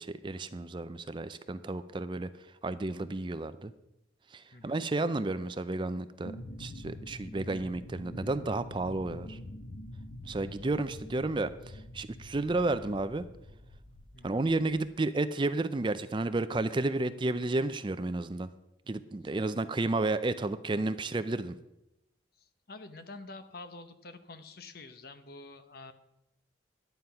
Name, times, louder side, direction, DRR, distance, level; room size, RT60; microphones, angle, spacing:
voice 1, 0.0-2.3 2.6-3.7 4.3-6.3 6.6-9.4 10.3-13.3 14.2-18.5 18.9-21.6, right 2 dB, 25° right, 12 dB, 0.4 m, -32 dB
voice 2, 4.5-4.8 14.1-14.4 22.4-25.9, left 3 dB, 50° left, 10 dB, 0.9 m, -48 dB
sound 1, 6.2-14.8, left 1 dB, 90° left, 1.1 m, -45 dB
11.5 x 9.2 x 5.7 m, 0.87 s
head